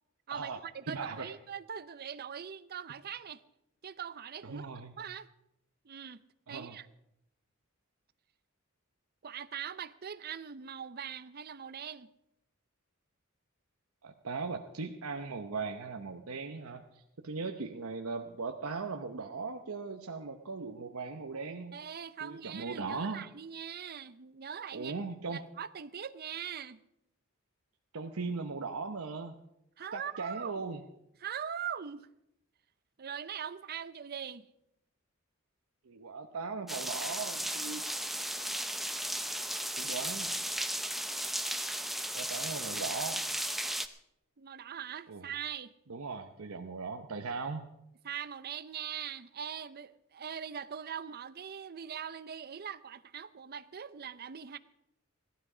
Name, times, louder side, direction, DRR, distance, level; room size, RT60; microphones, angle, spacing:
voice 1, 0.3-3.4 3.8-4.7 5.0-5.3 5.8-6.2 6.5-6.9 9.2-12.1 21.7-25.0 25.3-26.8 29.8-30.6 31.2-32.1 33.0-34.5 44.4-45.7 48.0-54.6, right 8 dB, 45° right, 0.6 m, -41 dB
voice 2, 0.9-1.3 4.4-5.0 6.5-6.8 14.0-21.7 22.2-23.2 24.7-25.4 27.9-29.4 29.9-30.8 35.8-37.8 39.8-40.3 42.1-43.3 45.1-45.3 45.9-47.6, right 4 dB, 85° right, 0.9 m, -38 dB
sound 1, 36.7-43.9, right 1 dB, ahead, 0.6 m, -35 dB
17.0 x 12.5 x 5.0 m
head